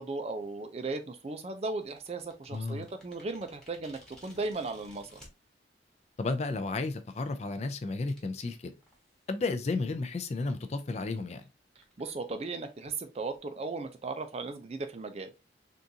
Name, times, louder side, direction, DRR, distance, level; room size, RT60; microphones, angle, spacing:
voice 1, 0.0-5.2 12.0-15.3, right 3 dB, 35° right, 0.4 m, -36 dB
sound 1, 1.8-5.3 6.1-6.2 6.7-6.9 7.7-7.8 8.1-8.2 8.8-9.3 9.6-9.7 10.0-10.1 10.6-10.7 11.0-11.1 11.3-11.5 11.7-13.4, left 1 dB, 5° left, 1.0 m, -57 dB
voice 2, 2.5-2.8 6.2-8.7 9.3-11.4, left 3 dB, 35° left, 0.4 m, -33 dB
3.7 x 2.5 x 2.7 m
head